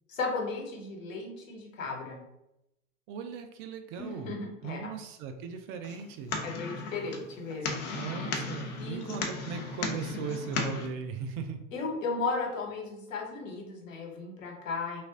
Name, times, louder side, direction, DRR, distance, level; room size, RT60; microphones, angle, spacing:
voice 1, 0.1-2.2 4.0-4.9 6.4-8.0 8.7-9.2 11.7-15.0, left 3 dB, 70° left, 0 dB, 1.2 m, -35 dB
voice 2, 3.1-4.3 4.6-6.4 7.9-11.6, right 6 dB, 35° right, 7 dB, 0.4 m, -38 dB
sound 1, 5.8-10.9, left 4 dB, 40° left, 0.7 m, -36 dB
3.1 x 2.4 x 3.6 m, 0.86 s
hypercardioid pair, 90°, 40 cm